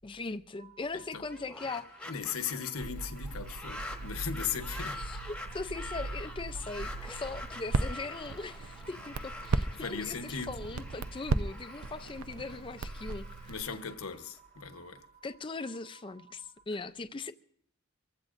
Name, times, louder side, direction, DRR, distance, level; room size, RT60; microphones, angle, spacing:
voice 1, 0.0-1.9 5.0-13.5 15.2-17.3, left 3 dB, 25° left, 0.4 m, -40 dB
sound 1, 0.5-16.6, right 7 dB, 50° right, 2.6 m, -59 dB
sound 2, 1.2-14.4, left 1 dB, 5° left, 1.1 m, -46 dB
voice 2, 2.1-5.0 9.8-10.6 13.5-15.0, left 6 dB, 80° left, 1.1 m, -37 dB
Crackle, 2.8-13.6, right 3 dB, 85° right, 0.6 m, -37 dB
24.5 x 15.5 x 2.6 m
head